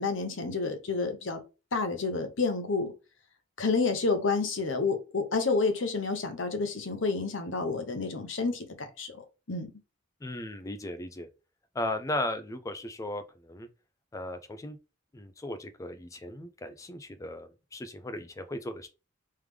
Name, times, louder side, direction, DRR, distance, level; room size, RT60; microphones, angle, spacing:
voice 1, 0.0-1.4 1.7-2.9 3.6-9.2 9.5-9.7, left 4 dB, 65° left, 0.8 m, -29 dB
voice 2, 10.2-11.3 11.8-13.7 14.1-14.8 15.1-18.9, left 1 dB, 15° left, 0.3 m, -36 dB
3.6 x 3.2 x 3.3 m
head